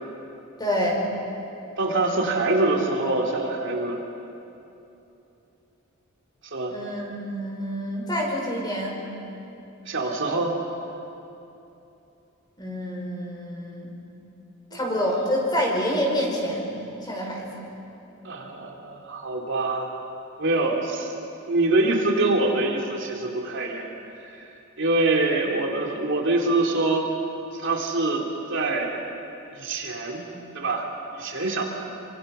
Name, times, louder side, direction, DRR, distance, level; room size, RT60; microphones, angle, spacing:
voice 1, 0.6-1.0 6.7-9.0 12.6-14.0 14.7-16.6 17.0-17.6, equal, 20° left, -2 dB, 5.3 m, -27 dB
voice 2, 1.8-4.0 6.5-6.7 9.8-10.5 15.0-15.1 18.2-19.9 20.4-21.1 21.5-23.9 24.2-24.3 24.8-27.1 27.6-28.2 28.5-28.9 29.5-30.3 30.5-30.9 31.1-31.6, right 2 dB, 60° right, 0 dB, 2.9 m, -24 dB
28.0 x 25.0 x 5.6 m, 2.8 s
head